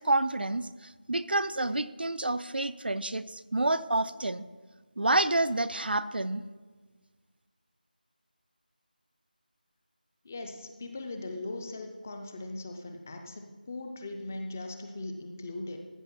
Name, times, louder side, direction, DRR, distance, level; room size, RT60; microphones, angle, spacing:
voice 1, 0.0-4.4 5.0-6.4, right 2 dB, 90° right, 13 dB, 0.6 m, -29 dB
voice 2, 10.2-15.8, left 2 dB, 15° left, 5 dB, 0.5 m, -39 dB
14.5 x 5.6 x 5.8 m, 1.4 s
figure-of-eight pair, 175°, 5 cm